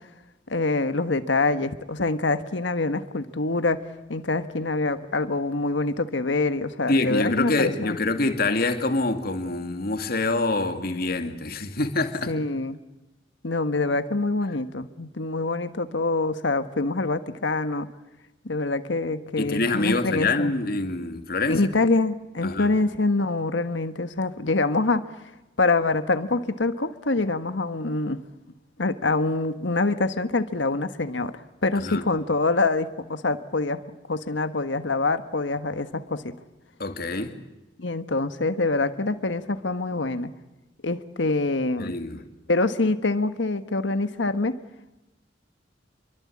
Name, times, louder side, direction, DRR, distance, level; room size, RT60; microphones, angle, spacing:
voice 1, 0.5-3.8 4.1-8.0 12.3-12.8 13.4-17.9 18.4-20.5 21.5-25.1 25.6-28.2 28.8-33.8 34.1-36.2 37.8-40.3 40.8-41.9 42.5-44.6, left 3 dB, 85° left, 1.4 m, -25 dB
voice 2, 6.9-12.3 19.4-21.7 22.4-22.7 31.8-32.0 36.8-37.3 41.8-42.3, left 2 dB, 55° left, 2.4 m, -26 dB
28.0 x 23.5 x 8.6 m
head